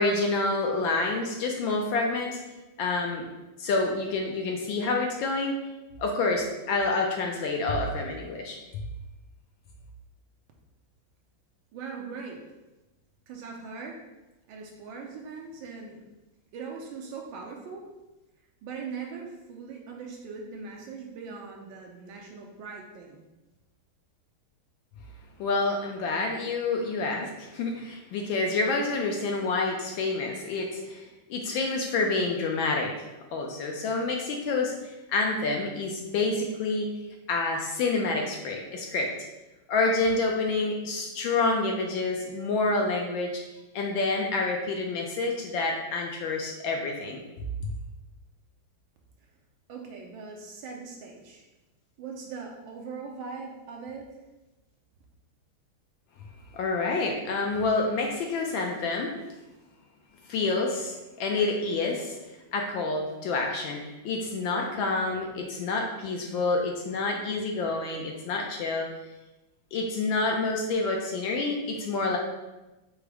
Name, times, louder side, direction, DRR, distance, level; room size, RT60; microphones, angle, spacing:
voice 1, 0.0-2.4 2.8-3.2 3.6-5.6 6.0-8.6 25.4-32.9 33.3-36.9 37.3-39.1 39.7-43.4 43.7-47.2 56.5-59.2 60.3-62.2 62.5-68.9 69.7-72.2, left 3 dB, 75° left, 1 dB, 1.2 m, -28 dB
voice 2, 11.7-12.4 13.3-14.0 14.5-16.0 16.5-17.9 18.6-23.2 49.7-51.4 52.0-54.1, right 5 dB, 75° right, 0 dB, 1.2 m, -40 dB
4.7 x 2.0 x 4.6 m, 1.1 s
omnidirectional pair, 2.4 m